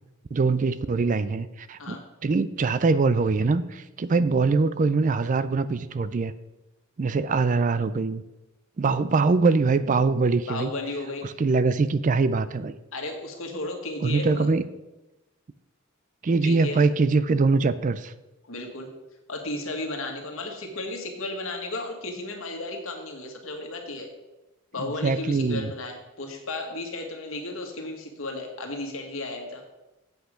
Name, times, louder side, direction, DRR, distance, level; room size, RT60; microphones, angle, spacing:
voice 1, 0.3-1.9 2.2-6.3 7.0-8.2 8.8-10.7 11.2-12.7 14.0-14.6 16.2-18.1 24.8-25.7, right 4 dB, 35° right, 14 dB, 0.4 m, -23 dB
voice 2, 10.5-11.3 12.9-14.5 16.4-16.8 18.4-18.9 19.3-24.1 24.7-29.6, left 2 dB, 65° left, 3 dB, 1.7 m, -34 dB
8.1 x 8.0 x 5.1 m, 1.0 s
head